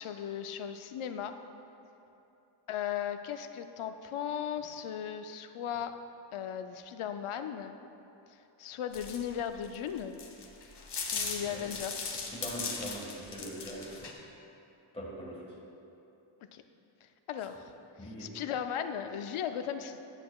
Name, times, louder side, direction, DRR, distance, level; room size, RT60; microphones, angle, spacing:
voice 1, 0.0-1.3 2.7-6.0 6.3-7.8 8.3-10.2 11.1-12.2 16.5-16.6 17.0-17.7 18.0-20.0, left 9 dB, 75° left, 9 dB, 0.5 m, -37 dB
sound 1, 8.9-14.1, left 4 dB, 55° left, 0.9 m, -38 dB
voice 2, 11.1-11.7 12.3-14.1 14.9-15.4 18.0-18.3, equal, 10° left, -4 dB, 1.5 m, -42 dB
10.5 x 7.4 x 2.3 m, 2.8 s
wide cardioid pair, 125°, 50 cm